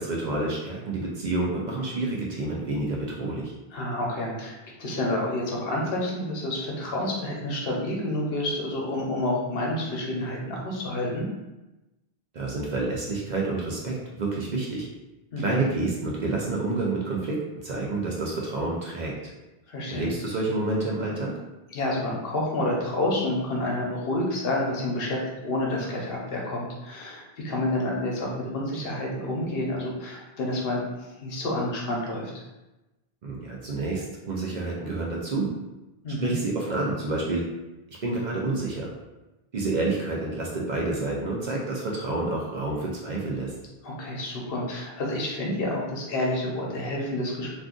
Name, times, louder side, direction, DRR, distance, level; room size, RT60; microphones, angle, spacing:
voice 1, 0.0-3.5 12.3-14.9 15.4-17.4 17.6-19.1 19.9-21.3 33.2-35.5 36.2-37.5 38.0-38.9 39.5-43.5, right 2 dB, 55° right, -3 dB, 0.6 m, -28 dB
voice 2, 3.7-11.3 15.3-15.6 19.7-20.1 21.7-32.3 36.0-36.3 43.8-47.6, left 1 dB, 65° left, -2 dB, 0.9 m, -29 dB
2.4 x 2.4 x 3.6 m, 1.0 s
omnidirectional pair, 1.0 m